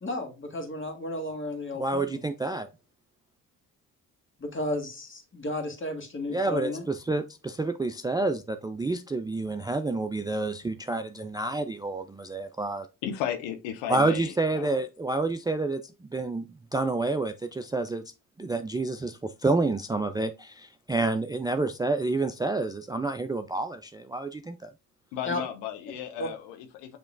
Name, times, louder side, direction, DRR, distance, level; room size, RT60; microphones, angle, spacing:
voice 1, 0.0-2.2 4.4-6.9 25.3-25.4 26.2-26.3, left 2 dB, 30° left, 1.8 m, -33 dB
voice 2, 1.8-2.7 6.3-12.9 13.9-15.8 16.1-18.0 18.4-24.7, right 2 dB, 10° right, 0.3 m, -29 dB
voice 3, 13.0-14.8 25.1-27.0, left 10 dB, 85° left, 0.8 m, -35 dB
6.9 x 3.0 x 2.5 m
hypercardioid pair, 55°, 40 cm